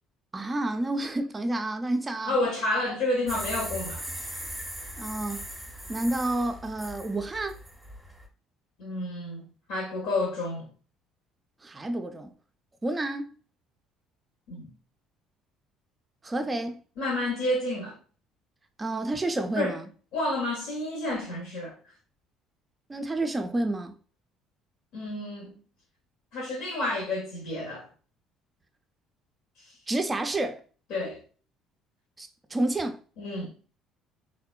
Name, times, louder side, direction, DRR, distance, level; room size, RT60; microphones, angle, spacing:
voice 1, 0.3-2.4 5.0-5.4 5.9-7.6 11.6-12.3 12.8-13.3 16.2-16.8 18.8-19.9 22.9-23.9 29.9-30.6 32.2-33.0, right 2 dB, 20° right, 0.4 m, -29 dB
voice 2, 2.2-4.0 8.8-9.4 9.7-10.7 14.5-14.7 16.4-16.5 17.0-18.0 19.5-19.8 20.1-21.8 24.9-25.6 26.3-27.9 30.9-31.2 33.2-33.5, left 2 dB, 65° left, 0.7 m, -30 dB
sound 1, 3.3-8.3, equal, ahead, 0.7 m, -39 dB
3.5 x 2.1 x 2.2 m
hypercardioid pair, 55°, 0 cm